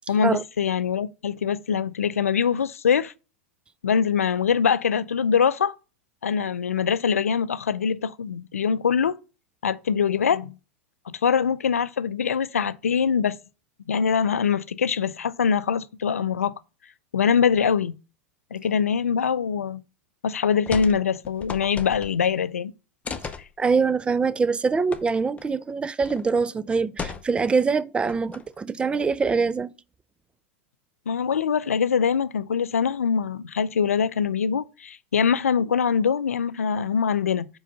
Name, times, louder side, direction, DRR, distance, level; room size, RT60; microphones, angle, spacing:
voice 1, 0.1-3.1 3.8-5.7 6.2-9.2 9.6-10.5 11.1-13.4 13.9-16.5 17.1-17.9 18.5-19.8 20.2-22.7 31.1-37.5, left 7 dB, 80° left, 0.4 m, -23 dB
sound 1, 20.7-21.0 21.2-22.3 23.0-23.5 24.9-25.0 25.4-25.5 26.0-26.3 27.0-27.5 28.1-28.6, left 5 dB, 20° left, 0.7 m, -35 dB
voice 2, 23.6-29.7, right 4 dB, 15° right, 0.3 m, -24 dB
4.9 x 4.7 x 5.4 m
figure-of-eight pair, 95°, 8 cm